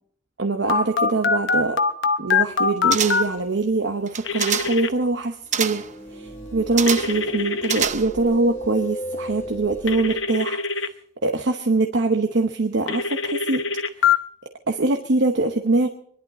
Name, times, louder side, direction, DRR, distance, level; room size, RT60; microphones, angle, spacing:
voice 1, 0.4-1.8 2.2-5.8 6.1-10.6 11.2-13.6 14.7-15.9, right 3 dB, 65° right, 5 dB, 0.9 m, -23 dB
Telephone, 0.7-3.2 4.3-4.9 6.9-7.9 9.9-10.9 12.9-14.2, left 5 dB, 70° left, 0.9 m, -22 dB
sound 1, 2.9-3.4 4.1-4.9 5.5-5.9 6.8-7.2 7.6-8.3 8.6-8.7, right 8 dB, 40° right, 0.7 m, -26 dB
sound 2, 5.5-10.2, equal, 15° left, 2.0 m, -36 dB
25.0 x 11.5 x 4.2 m, 0.64 s
head